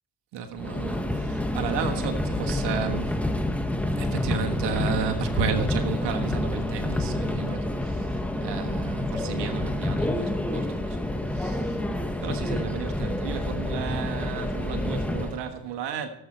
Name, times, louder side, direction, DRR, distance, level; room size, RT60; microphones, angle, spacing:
voice 1, 0.3-3.2 3.9-11.0 11.3-11.8 12.2-16.1, right 6 dB, 90° right, 1.4 m, -33 dB
Subway metro underground, 0.6-15.4, left 1 dB, 5° left, 1.6 m, -28 dB
16.0 x 7.8 x 4.3 m
cardioid pair, 75°, 40 cm